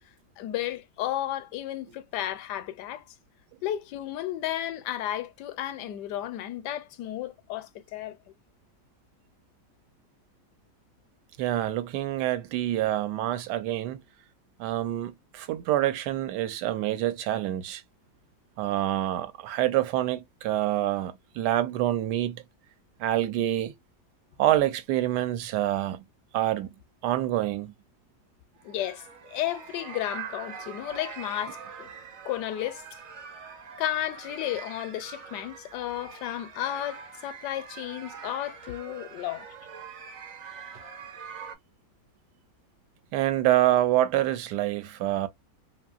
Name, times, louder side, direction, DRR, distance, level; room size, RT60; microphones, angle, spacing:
voice 1, 0.4-3.0 3.6-8.2 28.6-31.9 32.2-32.8 33.8-39.5, left 12 dB, 80° left, 1.2 m, -33 dB
voice 2, 11.4-14.0 14.6-17.8 18.6-22.4 23.0-23.7 24.4-26.0 26.3-26.7 27.0-27.7 43.1-45.3, right 13 dB, 80° right, 1.1 m, -26 dB
sound 1, 28.6-41.5, right 6 dB, 55° right, 0.9 m, -43 dB
2.9 x 2.7 x 2.3 m
omnidirectional pair, 1.8 m